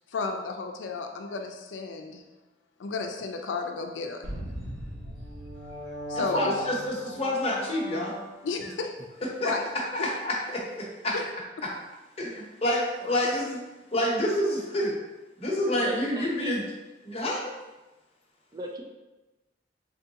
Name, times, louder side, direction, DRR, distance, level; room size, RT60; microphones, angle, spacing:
voice 1, 0.1-2.2 2.8-4.3 6.1-6.7 8.4-8.9 9.4-9.7 10.0-10.1 11.1-11.3, left 4 dB, 85° left, 4 dB, 0.4 m, -33 dB
sound 1, 4.2-8.7, equal, 55° right, 1.3 m, -38 dB
voice 2, 6.1-8.1 9.4-9.5 9.9-11.1 11.6-11.7 12.2-13.6 13.9-14.9 15.4-16.6 17.0-17.5, left 1 dB, 35° left, -3 dB, 0.8 m, -28 dB
voice 3, 15.8-16.5 18.5-18.8, right 1 dB, 20° right, 1 dB, 0.3 m, -38 dB
3.7 x 3.4 x 2.8 m, 1.1 s
head